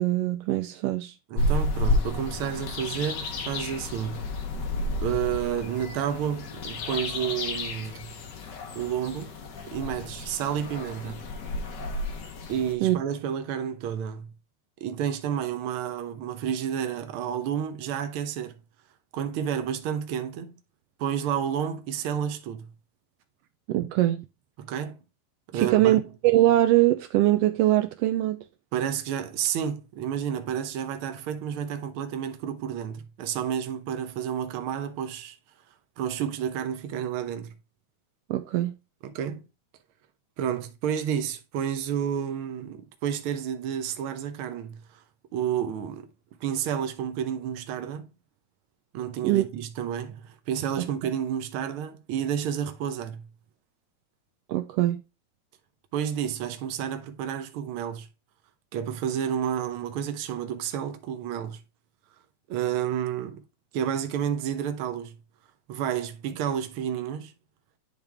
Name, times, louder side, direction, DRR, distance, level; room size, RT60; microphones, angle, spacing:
voice 1, 0.0-1.1 12.8-13.0 23.7-24.2 25.5-28.4 38.3-38.7 49.2-49.4 50.8-50.9 54.5-55.0, right 15 dB, 85° right, 1.4 m, -22 dB
voice 2, 1.3-4.2 5.0-8.2 8.7-9.3 9.7-11.2 12.5-14.3 14.8-18.6 19.1-20.5 21.0-22.7 24.6-25.0 25.5-26.0 28.7-35.4 36.0-37.5 39.0-39.4 40.4-44.8 45.3-46.1 46.4-48.1 48.9-53.3 55.9-58.1 58.7-61.6 62.5-63.4 63.7-65.2 65.7-67.3, right 9 dB, 70° right, 1.3 m, -30 dB
sound 1, 1.4-12.7, left 2 dB, 70° left, 1.0 m, -31 dB
10.5 x 3.6 x 3.4 m
omnidirectional pair, 3.3 m